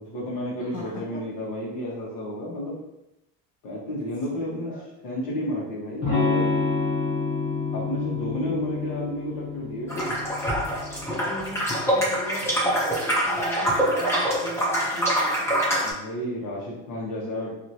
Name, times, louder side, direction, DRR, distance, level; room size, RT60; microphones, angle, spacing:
voice 1, 0.0-2.8 3.6-4.7 5.0-6.5 7.7-10.2 15.8-17.5, equal, 80° left, -4 dB, 1.3 m, -31 dB
voice 2, 0.6-1.2 4.3-4.8 11.1-15.8, left 1 dB, 25° left, -4 dB, 0.9 m, -39 dB
Electric guitar / Strum, 6.0-11.7, left 4 dB, 60° left, 1.5 m, -28 dB
sound 1, 9.9-15.9, equal, 10° left, 0.5 m, -25 dB
3.0 x 2.8 x 2.7 m, 0.88 s
cardioid pair, 160°, 31 cm